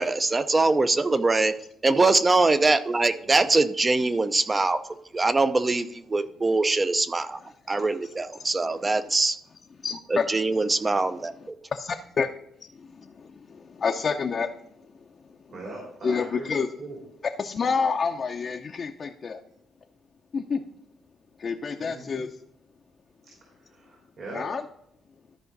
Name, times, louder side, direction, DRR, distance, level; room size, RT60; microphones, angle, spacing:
voice 1, 0.0-1.5 1.8-4.8 5.1-7.4 7.7-9.4 10.1-11.5, right 3 dB, 25° right, 12 dB, 0.6 m, -23 dB
voice 2, 3.2-3.5 15.5-17.0 21.8-22.1 23.7-24.5, right 2 dB, 60° right, -3 dB, 3.2 m, -40 dB
voice 3, 9.8-10.2 11.7-12.3 12.8-14.5 16.0-16.7 17.4-19.4 20.3-20.6 21.4-22.3 24.3-24.6, left 5 dB, 45° left, 2 dB, 0.6 m, -28 dB
13.0 x 5.0 x 4.0 m, 0.74 s
cardioid pair, 100°, 0 cm